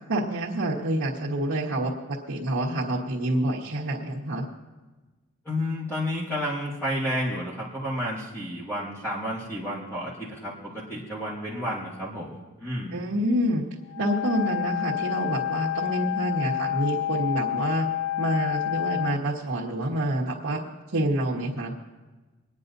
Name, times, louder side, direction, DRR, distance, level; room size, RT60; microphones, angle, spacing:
voice 1, 0.1-1.9 2.3-4.5 12.9-13.6 14.0-17.9 18.2-20.6 20.9-21.7, right 1 dB, 75° right, -8 dB, 1.5 m, -27 dB
voice 2, 5.5-13.0, equal, 10° left, -8 dB, 1.7 m, -31 dB
Wind instrument woodwind instrument, 13.9-19.2, left 12 dB, 55° left, 0.3 m, -29 dB
27.0 x 9.7 x 2.7 m, 1.2 s
head